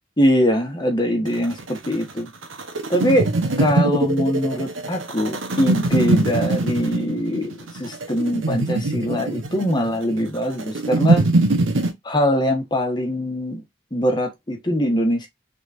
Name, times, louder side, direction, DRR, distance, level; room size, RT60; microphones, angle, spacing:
voice 1, 0.2-2.3 2.9-3.3 3.6-11.2 12.0-13.6 13.9-15.3, equal, 20° left, 1.4 m, -22 dB
sound 1, 1.3-11.9, right 2 dB, 75° right, 1.2 m, -22 dB
4.9 x 3.8 x 2.7 m
head